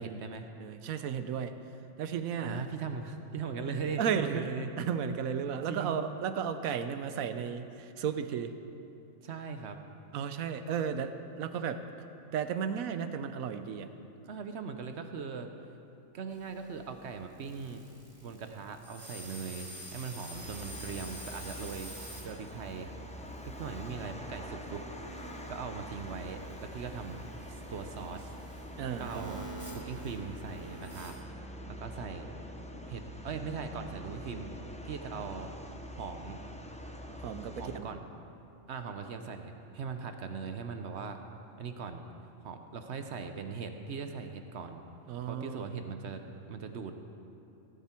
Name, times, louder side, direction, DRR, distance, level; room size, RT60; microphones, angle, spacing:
voice 1, 0.0-0.5 2.4-4.7 5.7-6.0 9.2-9.8 14.2-15.5 16.1-17.8 18.2-21.9 22.2-22.9 23.5-24.8 25.5-28.4 29.0-29.5 29.7-31.1 31.7-32.4 32.9-34.5 34.8-35.5 36.0-36.4 37.5-38.1 38.7-41.2 41.6-42.0 42.4-44.8 45.3-46.9, right 5 dB, 60° right, 6 dB, 0.9 m, -40 dB
voice 2, 0.5-1.5 2.0-2.7 4.0-4.5 4.8-8.5 10.1-11.8 12.3-13.9 28.8-29.4 37.1-37.9 45.1-45.6 46.0-46.1, right 7 dB, 80° right, 10 dB, 1.1 m, -34 dB
sound 1, 16.3-31.1, right 1 dB, 20° right, 2.0 m, -49 dB
sound 2, 20.3-37.8, equal, 10° left, 0.4 m, -45 dB
16.5 x 9.3 x 4.4 m, 3.0 s
omnidirectional pair, 1.4 m